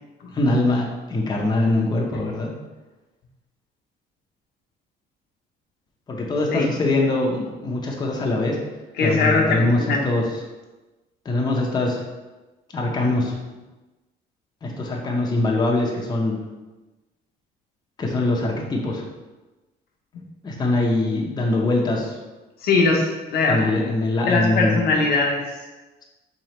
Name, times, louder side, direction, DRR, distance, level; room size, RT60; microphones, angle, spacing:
voice 1, 0.3-2.5 6.1-8.6 9.0-9.8 10.0-10.2 11.2-12.0 12.7-13.4 14.6-16.3 18.0-19.0 20.4-22.1 23.5-24.8, left 2 dB, 25° left, -1 dB, 0.7 m, -22 dB
voice 2, 9.0-10.1 22.6-23.7 24.3-25.4, left 3 dB, 70° left, 0 dB, 0.7 m, -20 dB
3.9 x 3.1 x 2.9 m, 1.1 s
cardioid pair, 110°, 17 cm